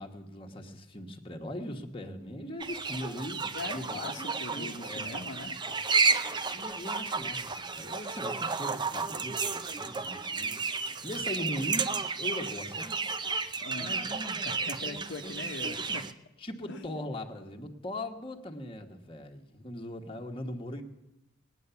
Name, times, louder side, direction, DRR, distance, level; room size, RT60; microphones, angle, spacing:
voice 1, 0.0-5.3 6.5-10.7 11.0-11.9 12.2-13.0 13.8-14.4 14.8-15.5 15.8-15.9 16.4-20.8, left 1 dB, 25° left, 2 dB, 1.3 m, -40 dB
hen house lots of chicks +village voices bg Putti Uganda MS, 2.6-16.1, right 4 dB, 20° right, 0.6 m, -32 dB
voice 2, 3.5-5.8 13.6-14.1 14.4-16.0 16.7-17.0, left 3 dB, 60° left, 3 dB, 1.0 m, -41 dB
19.0 x 9.4 x 6.9 m, 0.97 s
head